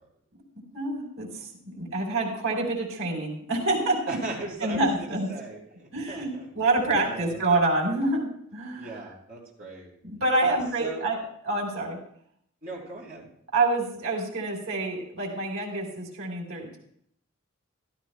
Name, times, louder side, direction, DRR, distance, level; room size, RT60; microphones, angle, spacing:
voice 1, 0.7-4.2 4.6-5.3 5.9-9.1 10.0-11.2 11.4-12.0 13.5-16.8, right 2 dB, 90° right, -1 dB, 3.7 m, -27 dB
voice 2, 4.1-4.9 5.3-6.5 7.0-7.4 8.8-9.9 10.4-11.0 12.6-13.3, right 2 dB, 45° right, -4 dB, 3.9 m, -38 dB
15.5 x 13.5 x 2.2 m, 0.67 s
head